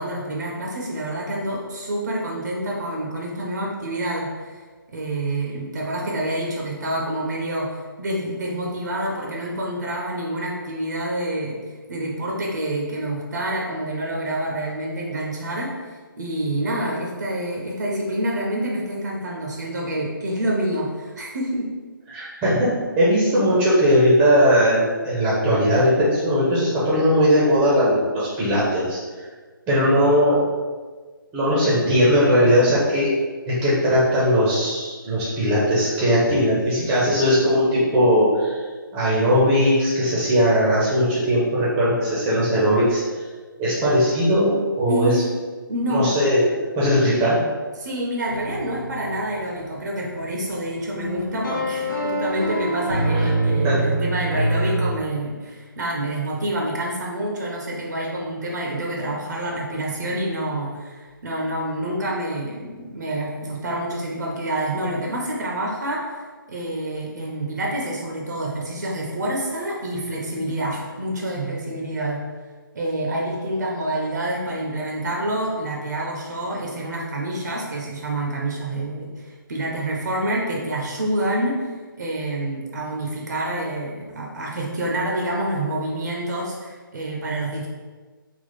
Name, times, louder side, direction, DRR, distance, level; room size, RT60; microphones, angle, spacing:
voice 1, 0.0-4.6 4.9-15.7 16.2-21.7 44.9-45.3 45.7-46.1 47.8-66.1 66.5-72.2 72.7-87.7, right 1 dB, 50° right, -2 dB, 0.7 m, -27 dB
voice 2, 22.1-29.0 29.7-30.4 31.3-33.1 33.5-38.6 38.9-43.2 43.6-45.2 45.9-46.4 46.7-47.4 53.1-53.3 53.6-53.8, equal, 10° right, -8 dB, 0.7 m, -19 dB
sound 1, 48.3-54.9, right 1 dB, 60° left, 0.7 m, -25 dB
3.6 x 2.4 x 4.0 m, 1.4 s
figure-of-eight pair, 145°, 12 cm